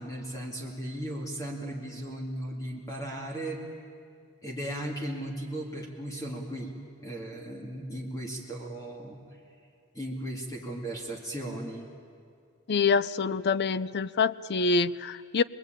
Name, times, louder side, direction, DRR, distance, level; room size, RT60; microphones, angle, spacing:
voice 1, 0.0-3.6 4.4-6.7 7.0-9.2 9.9-11.9, right 1 dB, 15° left, -1 dB, 2.5 m, -36 dB
voice 2, 12.7-15.4, left 4 dB, 50° left, 16 dB, 0.6 m, -26 dB
26.5 x 21.0 x 9.1 m, 2.3 s
head